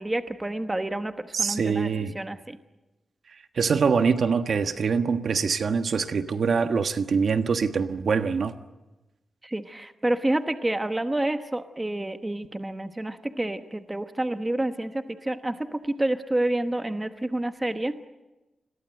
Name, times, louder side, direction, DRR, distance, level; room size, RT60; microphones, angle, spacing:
voice 1, 0.0-2.6 9.4-18.0, right 1 dB, 15° right, 1.1 m, -29 dB
voice 2, 1.3-2.1 3.5-8.5, right 5 dB, 55° right, 1.4 m, -24 dB
30.0 x 21.5 x 7.9 m
wide cardioid pair, 145°, 0 cm